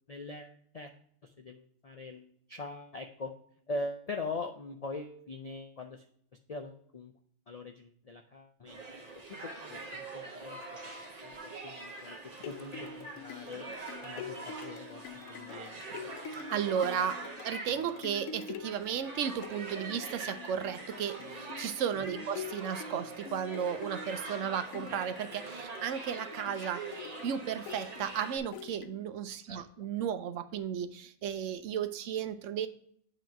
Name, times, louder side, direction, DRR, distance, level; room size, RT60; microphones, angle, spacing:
voice 1, 0.1-0.9 1.2-3.3 3.7-6.0 6.5-7.1 7.5-10.6 11.2-13.7 14.0-15.8 22.1-22.2 29.5-29.6, left 2 dB, 65° left, 4 dB, 0.3 m, -42 dB
sound 1, 8.7-28.4, right 3 dB, 35° right, 1.1 m, -44 dB
sound 2, 12.1-29.2 29.8-29.9, left 7 dB, 85° left, 1.0 m, -46 dB
voice 2, 16.5-32.7, right 8 dB, 75° right, 10 dB, 0.9 m, -34 dB
7.7 x 3.0 x 5.7 m, 0.64 s
omnidirectional pair, 1.3 m